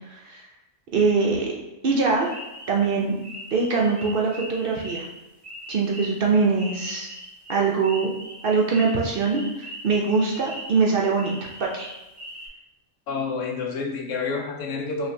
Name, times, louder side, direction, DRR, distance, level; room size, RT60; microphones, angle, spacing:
voice 1, 0.1-0.4 0.9-1.5 1.8-2.3 2.7-3.2 3.5-5.0 5.7-7.1 7.5-8.1 8.4-11.3 11.6-11.9, right 4 dB, 60° right, -1 dB, 0.6 m, -22 dB
sound 1, 2.1-12.5, equal, 25° right, 1.0 m, -41 dB
voice 2, 13.1-15.1, left 4 dB, 75° left, 2 dB, 0.9 m, -29 dB
5.2 x 2.5 x 2.7 m, 0.95 s
omnidirectional pair, 1.4 m